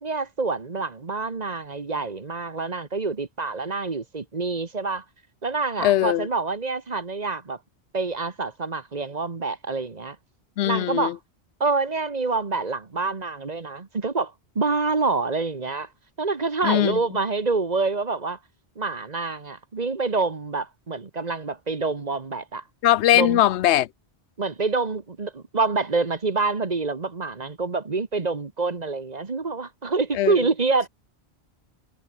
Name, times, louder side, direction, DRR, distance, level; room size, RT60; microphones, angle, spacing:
voice 1, 0.0-5.0 5.4-7.6 7.9-10.2 10.6-11.2 11.6-15.9 16.2-18.4 18.8-22.6 23.1-23.4 24.4-30.9, right 3 dB, 40° right, 1.4 m, -27 dB
voice 2, 5.8-6.3 10.6-11.1 16.6-17.0 22.8-23.9 30.1-30.4, left 13 dB, 85° left, 0.9 m, -20 dB
omnidirectional pair, 1.1 m